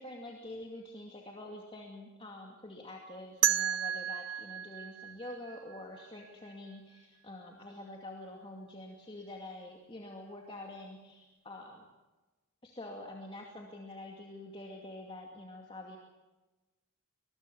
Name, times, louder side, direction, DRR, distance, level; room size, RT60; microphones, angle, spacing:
voice 1, 0.0-11.9 12.6-16.0, left 1 dB, 25° left, 1 dB, 2.4 m, -46 dB
sound 1, 3.4-6.3, right 10 dB, 75° right, 1.0 m, -33 dB
24.0 x 20.5 x 7.0 m, 1.2 s
head